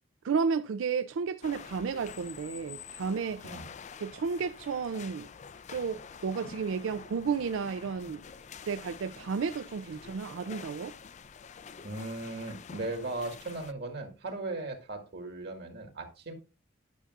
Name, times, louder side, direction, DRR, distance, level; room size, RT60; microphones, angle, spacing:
voice 1, 0.2-3.4 4.0-5.3 5.7-8.2 8.7-10.9, right 5 dB, 85° right, 0.4 m, -32 dB
sound 1, 1.4-13.7, left 6 dB, 40° left, 0.4 m, -47 dB
voice 2, 11.8-16.3, right 2 dB, 55° right, 1.9 m, -37 dB
11.5 x 6.6 x 2.4 m
head